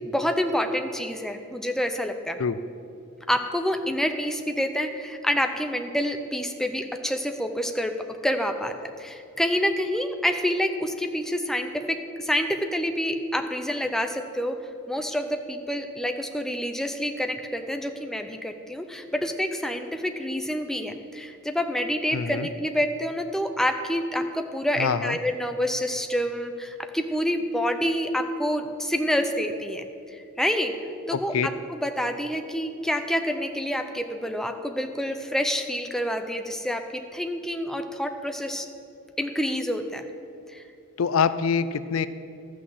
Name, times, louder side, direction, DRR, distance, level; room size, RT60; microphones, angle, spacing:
voice 1, 0.1-2.4 3.3-7.9 8.2-14.6 14.9-30.7 31.1-38.7 39.2-40.0 40.5-40.6, equal, ahead, 6 dB, 0.6 m, -27 dB
voice 2, 22.1-22.5 24.8-25.2 31.1-31.5 41.0-42.1, left 6 dB, 70° left, 14 dB, 0.4 m, -25 dB
13.0 x 6.2 x 7.6 m, 2.5 s
head